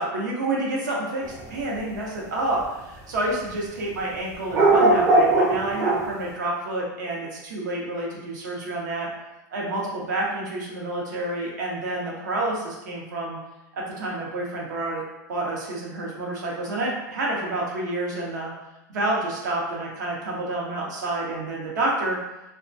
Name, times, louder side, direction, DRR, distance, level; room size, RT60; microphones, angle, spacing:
voice 1, 0.0-9.1 9.5-13.4 13.7-15.0 15.3-18.5 18.9-22.2, right 2 dB, 80° right, -3 dB, 0.7 m, -29 dB
sound 1, 1.2-1.5 2.6-2.7 3.5-3.6 4.5-6.1, right 2 dB, 35° right, 0.5 m, -19 dB
2.2 x 2.2 x 2.5 m, 0.98 s
supercardioid pair, 135°, 10 cm